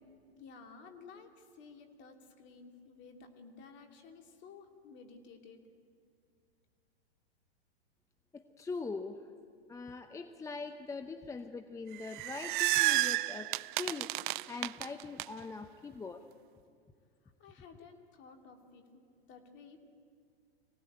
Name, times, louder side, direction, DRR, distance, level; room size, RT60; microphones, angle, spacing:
voice 1, 0.3-5.6 17.4-19.8, left 5 dB, 35° left, 4 dB, 3.0 m, -54 dB
voice 2, 8.3-9.3 9.7-13.5 13.8-14.1 14.5-16.2, left 4 dB, 10° left, 9 dB, 0.7 m, -42 dB
sound 1, 11.9-15.2, right 18 dB, 50° right, 0.5 m, -31 dB
23.5 x 17.5 x 8.8 m, 2.2 s
hypercardioid pair, 115°, 31 cm